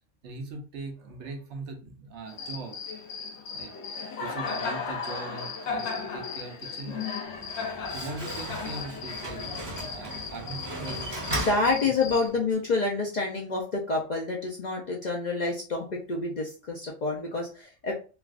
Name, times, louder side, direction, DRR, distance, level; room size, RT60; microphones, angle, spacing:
voice 1, 0.2-2.8 3.5-3.7 4.2-7.1 7.5-9.5 9.8-11.1 11.8-11.9, right 3 dB, 70° right, 3 dB, 0.9 m, -40 dB
Cricket, 2.3-12.3, left 5 dB, 70° left, 0.9 m, -36 dB
Slam, 7.2-12.4, right 1 dB, 25° right, 0.7 m, -37 dB
voice 2, 11.4-17.9, left 3 dB, 50° left, -2 dB, 0.5 m, -28 dB
3.3 x 2.3 x 2.4 m, 0.35 s
omnidirectional pair, 1.3 m